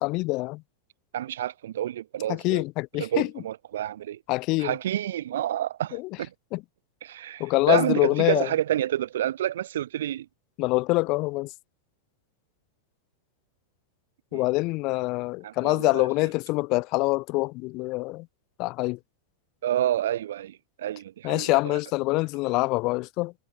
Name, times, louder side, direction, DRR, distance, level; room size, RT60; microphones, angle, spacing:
voice 1, 0.0-0.6 2.3-3.3 4.3-4.8 5.9-6.1 6.5-6.6 7.4-8.5 10.6-11.5 14.3-18.3 18.6-19.0 21.2-23.3, left 23 dB, 40° left, 0.6 m, -25 dB
voice 2, 1.1-2.6 3.0-4.2 4.6-6.3 7.0-10.3 14.3-14.4 15.4-16.1 19.6-21.8, right 12 dB, 60° right, 0.3 m, -29 dB
figure-of-eight pair, 90°, 0 cm